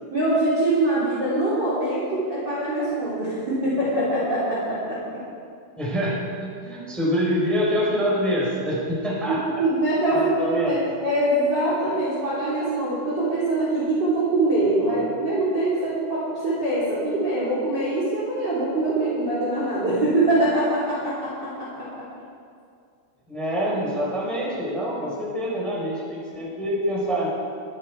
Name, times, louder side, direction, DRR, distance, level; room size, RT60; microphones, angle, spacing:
voice 1, 0.1-5.2 9.3-21.9, right 1 dB, 25° right, -8 dB, 3.1 m, -23 dB
voice 2, 5.8-9.4 10.1-10.8 14.8-15.0 23.3-27.3, equal, ahead, -6 dB, 3.7 m, -26 dB
23.5 x 9.9 x 4.8 m, 2.3 s
omnidirectional pair, 5.9 m